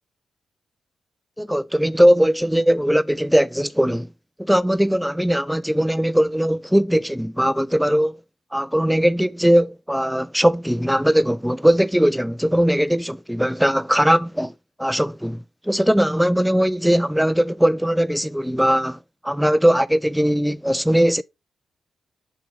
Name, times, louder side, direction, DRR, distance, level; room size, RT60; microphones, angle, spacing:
voice 1, 1.4-4.1 4.4-8.2 8.5-14.5 14.8-21.2, equal, ahead, 0.4 m, -19 dB
7.7 x 5.6 x 2.8 m
supercardioid pair, 60°, 0 cm